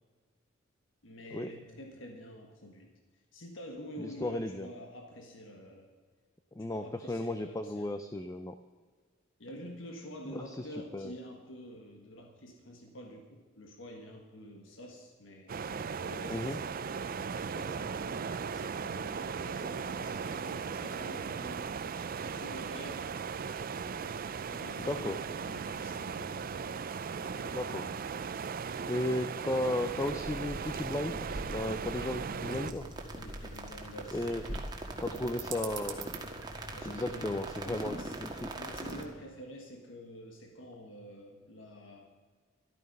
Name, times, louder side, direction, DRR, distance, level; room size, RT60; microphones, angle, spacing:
voice 1, 1.0-2.9 3.3-5.9 6.6-8.0 9.4-16.8 17.4-21.9 22.3-23.1 24.5-26.6 27.2-27.7 32.3-34.7 35.2-35.6 36.7-42.1, equal, 70° left, 3 dB, 1.6 m, -48 dB
voice 2, 4.0-4.7 6.6-8.5 10.3-10.7 10.9-11.1 16.3-16.6 24.8-25.2 27.4-27.9 28.9-32.8 34.1-34.6 35.0-36.1 36.8-38.0 38.2-38.5, left 1 dB, 15° left, 9 dB, 0.5 m, -35 dB
sound 1, 15.5-32.7, right 5 dB, 45° right, 0.5 m, -37 dB
sound 2, 29.8-39.0, right 2 dB, 70° right, 1.8 m, -45 dB
sound 3, 32.5-39.0, right 2 dB, 20° right, 1.6 m, -42 dB
13.0 x 12.5 x 5.4 m, 1.5 s
head